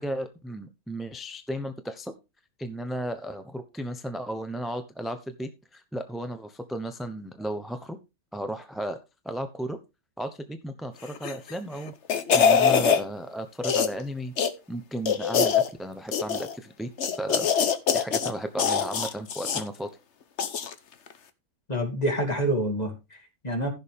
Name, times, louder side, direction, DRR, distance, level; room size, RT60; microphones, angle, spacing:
voice 1, 0.0-2.1 2.6-8.0 8.3-9.0 9.2-9.8 10.2-11.9 12.3-14.3 14.7-17.5 17.9-19.9, right 1 dB, ahead, 8 dB, 0.7 m, -34 dB
sound 1, 11.2-11.5 11.9-13.0 13.6-14.0 14.4-14.5 15.1-15.7 16.1-16.6 17.0-18.3 18.6-19.6 20.4-20.7 21.1-21.2, left 7 dB, 55° left, 1.2 m, -23 dB
voice 2, 21.7-23.7, right 1 dB, 30° left, 3 dB, 2.8 m, -27 dB
15.0 x 6.7 x 3.5 m, 0.26 s
omnidirectional pair, 1.5 m